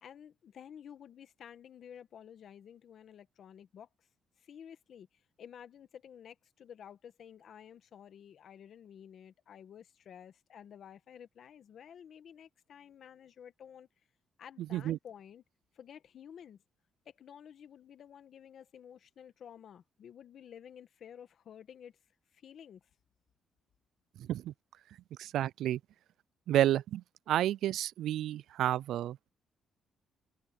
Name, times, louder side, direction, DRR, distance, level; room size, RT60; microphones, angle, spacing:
voice 1, 0.0-3.9 4.4-13.9 14.4-15.4 15.7-16.6 17.0-22.0 22.3-22.9, left 8 dB, 60° left, 1.5 m, -52 dB
voice 2, 25.2-25.8 26.5-27.0 27.3-29.3, right 12 dB, 80° right, 0.4 m, -30 dB
cardioid pair, 90°, 0 cm